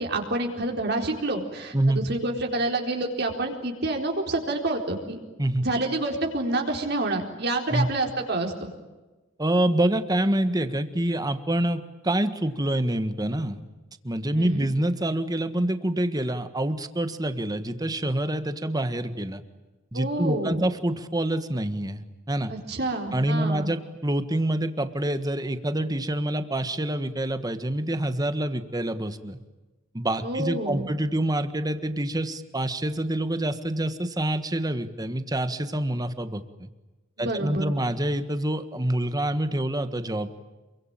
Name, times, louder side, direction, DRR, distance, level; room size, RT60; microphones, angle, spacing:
voice 1, 0.0-5.2 5.6-8.7 14.3-14.7 19.9-20.6 22.5-23.7 30.2-30.9 37.2-37.7, right 2 dB, 55° right, 1 dB, 4.2 m, -28 dB
voice 2, 9.4-13.6 14.0-19.4 19.9-22.5 23.1-29.4 29.9-36.7 37.2-40.3, right 1 dB, 20° right, 10 dB, 1.5 m, -26 dB
27.5 x 24.0 x 9.0 m, 1.2 s
head